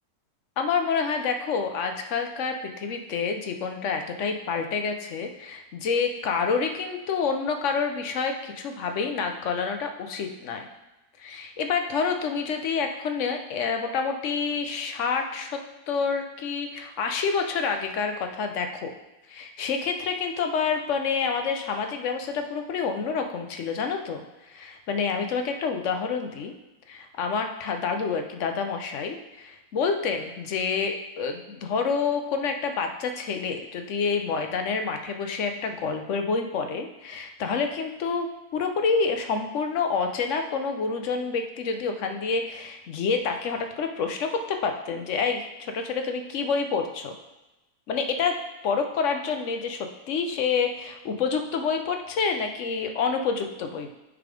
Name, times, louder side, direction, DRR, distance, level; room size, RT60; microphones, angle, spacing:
voice 1, 0.6-10.7 11.2-15.5 15.9-18.9 19.3-26.5 26.9-38.3 38.5-47.1 47.9-48.4 48.6-54.0, left 5 dB, 60° left, 5 dB, 0.9 m, -28 dB
8.2 x 3.7 x 5.0 m, 1.0 s
omnidirectional pair, 1.7 m